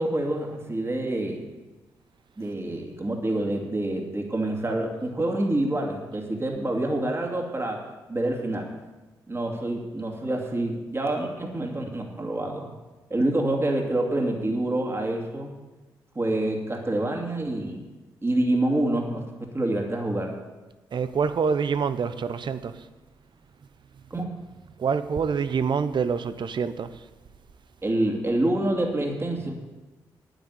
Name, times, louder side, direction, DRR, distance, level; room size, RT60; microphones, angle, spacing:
voice 1, 0.0-1.4 2.4-7.8 8.1-8.7 9.3-12.7 13.1-15.5 16.1-17.9 18.2-20.4 24.1-24.3 27.8-29.5, right 1 dB, 30° right, 2.6 m, -27 dB
voice 2, 20.9-22.7 24.8-26.9, right 6 dB, 60° right, 0.8 m, -26 dB
9.5 x 9.2 x 8.3 m
supercardioid pair, 50°, 9 cm